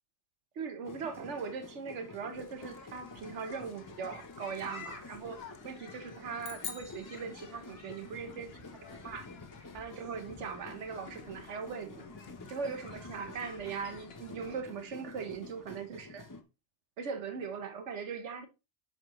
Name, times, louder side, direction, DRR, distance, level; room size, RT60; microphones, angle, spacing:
voice 1, 0.5-5.4 5.6-8.5 9.0-9.3 9.7-12.0 12.5-16.3 17.0-18.5, right 6 dB, 85° right, 1.3 m, -40 dB
sound 1, 0.8-16.4, left 3 dB, 20° left, 0.6 m, -50 dB
sound 2, 2.3-14.6, left 5 dB, 65° left, 1.2 m, -53 dB
sound 3, 6.4-8.1, left 7 dB, 80° left, 1.2 m, -44 dB
8.7 x 5.0 x 3.0 m
omnidirectional pair, 1.2 m